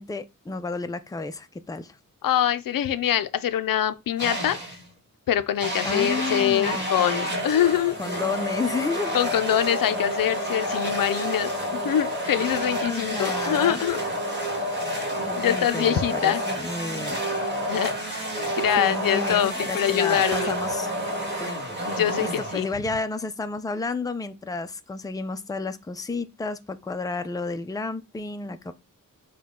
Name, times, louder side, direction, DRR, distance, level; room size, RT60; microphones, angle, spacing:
voice 1, 0.0-2.0 5.8-7.3 8.0-9.2 12.9-13.8 15.3-17.2 18.8-20.9 21.4-21.8 22.2-28.7, left 3 dB, 10° left, 0.5 m, -31 dB
voice 2, 2.2-4.6 5.3-8.0 9.1-14.0 14.9-16.4 17.7-20.6 21.9-22.7, left 10 dB, 80° left, 0.5 m, -24 dB
sound 1, 4.2-4.9 5.6-23.0, equal, 30° right, 1.5 m, -29 dB
6.0 x 2.3 x 3.7 m
cardioid pair, 65°, 33 cm